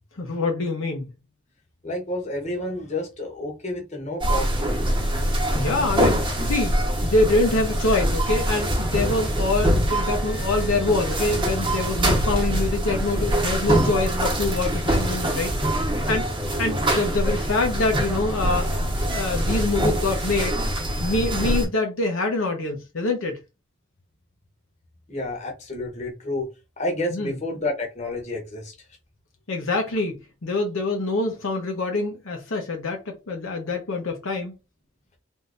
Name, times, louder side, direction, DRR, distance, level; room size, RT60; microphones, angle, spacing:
voice 1, 0.2-1.1 5.5-6.8 7.0-15.8 16.1-16.3 16.6-18.8 19.1-20.6 21.0-23.4 27.1-27.3 29.5-34.5, left 2 dB, 70° left, 0.8 m, -25 dB
voice 2, 1.8-4.7 25.1-26.5 26.8-28.7, left 1 dB, 30° left, 1.0 m, -30 dB
sound 1, 4.2-21.6, equal, 25° right, 1.1 m, -24 dB
3.6 x 2.6 x 2.5 m
head